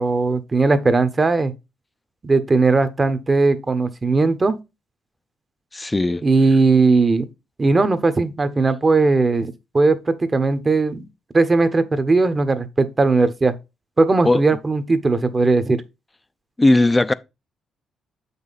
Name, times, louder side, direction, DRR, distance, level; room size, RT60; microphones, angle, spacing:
voice 1, 0.0-1.5 2.2-4.6 6.2-7.3 7.6-11.0 11.3-13.5 14.0-15.8, right 3 dB, 30° right, 1.0 m, -18 dB
voice 2, 5.7-6.2 14.2-14.4 16.6-17.1, left 2 dB, 15° left, 0.5 m, -17 dB
7.4 x 5.5 x 4.0 m
cardioid pair, 90°, 0 cm